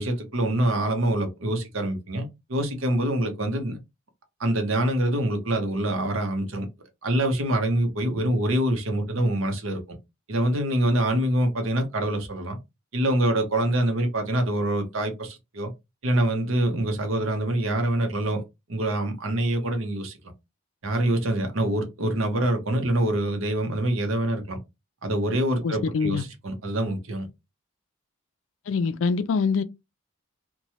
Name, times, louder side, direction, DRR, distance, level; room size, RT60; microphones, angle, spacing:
voice 1, 0.0-3.8 4.4-6.7 7.0-9.8 10.3-12.6 12.9-15.7 16.0-18.4 18.7-20.2 20.8-24.6 25.0-27.3, right 1 dB, 70° right, 0.9 m, -25 dB
voice 2, 25.6-26.2 28.7-29.6, left 5 dB, 65° left, 0.4 m, -24 dB
3.0 x 2.2 x 2.8 m
head